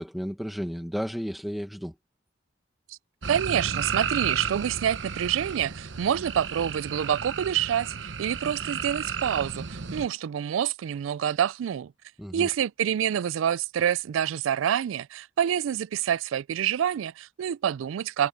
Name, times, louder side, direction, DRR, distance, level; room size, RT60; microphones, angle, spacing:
voice 1, 0.0-1.9 12.2-12.5, equal, ahead, 1.0 m, -33 dB
sound 1, 3.2-10.1, right 6 dB, 65° right, 1.0 m, -33 dB
voice 2, 3.3-11.9 12.3-18.3, right 9 dB, 85° right, 0.3 m, -27 dB
head